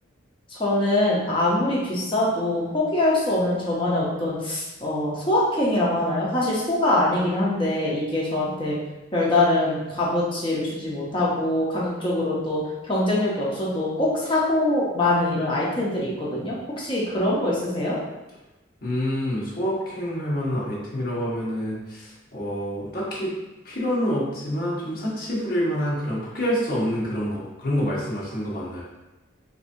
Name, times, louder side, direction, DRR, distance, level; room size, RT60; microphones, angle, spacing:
voice 1, 0.5-8.8 9.1-18.0, left 1 dB, 25° left, -6 dB, 0.7 m, -23 dB
voice 2, 18.8-23.3 23.6-28.8, equal, 45° left, -6 dB, 1.1 m, -27 dB
4.7 x 2.7 x 2.6 m, 1.0 s
head